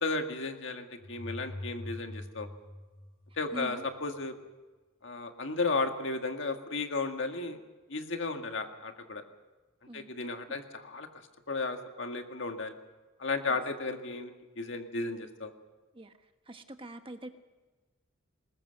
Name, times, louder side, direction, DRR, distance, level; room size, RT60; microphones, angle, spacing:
voice 1, 0.0-2.5 3.4-4.3 5.0-7.6 7.9-9.2 9.9-11.1 11.5-12.7 13.2-15.5, left 3 dB, 65° left, 5 dB, 1.9 m, -34 dB
sound 1, 1.0-3.9, left 1 dB, 85° left, 6.4 m, -43 dB
voice 2, 3.5-3.9 9.9-10.1 13.5-13.6 15.9-16.1 16.5-17.3, right 1 dB, 25° right, 7 dB, 1.2 m, -43 dB
20.5 x 20.0 x 6.6 m, 1.2 s
head